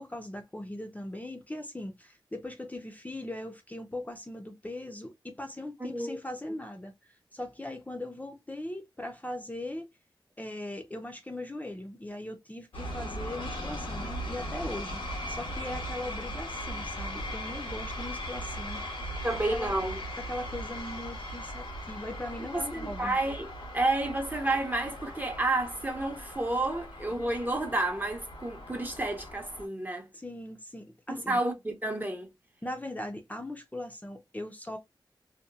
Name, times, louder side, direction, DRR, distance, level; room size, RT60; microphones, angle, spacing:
voice 1, 0.0-9.9 10.4-19.1 19.5-19.7 20.3-23.1 30.1-31.4 32.6-34.8, left 1 dB, 20° left, 0.5 m, -40 dB
voice 2, 5.8-6.2 19.2-20.0 22.4-30.1 31.1-32.3, right 2 dB, 20° right, 0.7 m, -30 dB
sound 1, 12.7-29.7, equal, 85° left, 1.0 m, -39 dB
2.8 x 2.2 x 2.3 m
wide cardioid pair, 75°, 8 cm